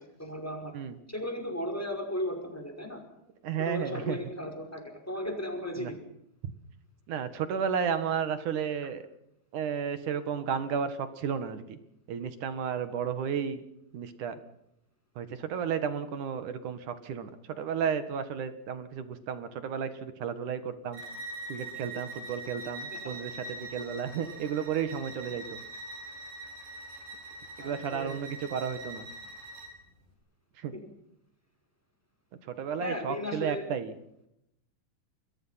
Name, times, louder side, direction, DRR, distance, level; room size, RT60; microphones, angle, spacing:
voice 1, 0.0-0.7 1.1-3.0 3.6-6.0 27.6-28.2 30.7-30.8 32.8-33.6, equal, 5° left, 4 dB, 5.3 m, -35 dB
voice 2, 3.4-4.2 5.8-5.9 7.1-9.0 9.5-11.8 12.1-13.6 13.9-14.4 15.2-17.3 17.6-21.0 21.5-25.6 27.6-29.1 30.6-30.7 32.5-33.9, right 7 dB, 60° right, 11 dB, 3.0 m, -33 dB
Bowed string instrument, 20.9-29.7, right 2 dB, 90° right, 7.5 m, -43 dB
28.5 x 22.5 x 5.9 m, 0.79 s
omnidirectional pair, 4.2 m